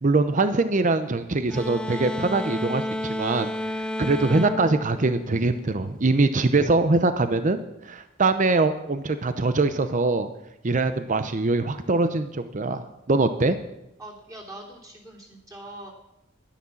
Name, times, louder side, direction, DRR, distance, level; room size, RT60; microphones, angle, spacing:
voice 1, 0.0-10.3 10.6-13.6, right 3 dB, 40° right, 10 dB, 0.7 m, -23 dB
sound 1, 1.5-6.0, left 1 dB, 5° left, 0.5 m, -31 dB
voice 2, 14.0-15.9, right 1 dB, 20° right, -2 dB, 3.3 m, -42 dB
12.0 x 10.0 x 7.1 m, 0.88 s
head